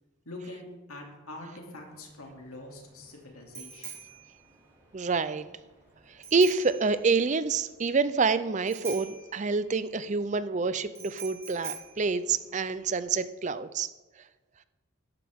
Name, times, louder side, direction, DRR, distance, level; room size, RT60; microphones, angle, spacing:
voice 1, 0.2-3.9, left 2 dB, 85° left, 1 dB, 2.7 m, -44 dB
Bicycle bell, 1.9-13.0, right 6 dB, 15° right, 3.7 m, -46 dB
voice 2, 4.9-5.4 6.1-13.9, right 4 dB, 35° right, 13 dB, 0.4 m, -27 dB
13.5 x 12.0 x 3.6 m, 1.2 s
head